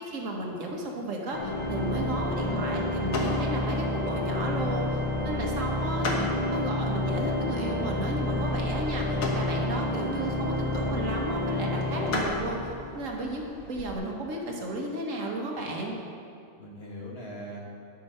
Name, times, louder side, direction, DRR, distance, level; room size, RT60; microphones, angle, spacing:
voice 1, 0.1-5.0 5.2-12.6 12.9-16.0, right 1 dB, 70° right, 0 dB, 1.6 m, -33 dB
Organ, 1.3-13.1, left 1 dB, 30° left, 0.7 m, -29 dB
sound 1, 1.4-13.9, left 2 dB, 85° left, 1.7 m, -39 dB
voice 2, 2.0-2.9 16.6-17.7, equal, 50° left, -3 dB, 1.8 m, -41 dB
12.0 x 6.0 x 5.6 m, 2.4 s
omnidirectional pair, 1.4 m